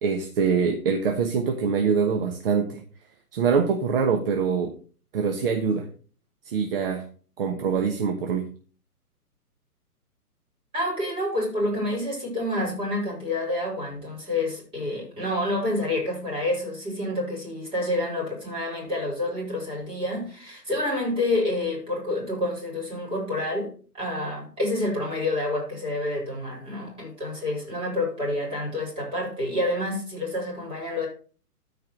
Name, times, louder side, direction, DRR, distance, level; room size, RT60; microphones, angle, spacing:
voice 1, 0.0-2.8 3.3-4.7 5.1-5.9 6.4-7.0 7.4-8.4, right 6 dB, 35° right, 1.2 m, -24 dB
voice 2, 10.7-31.1, left 1 dB, 10° right, 4.7 m, -28 dB
13.5 x 4.9 x 4.7 m
hypercardioid pair, 145°, 47 cm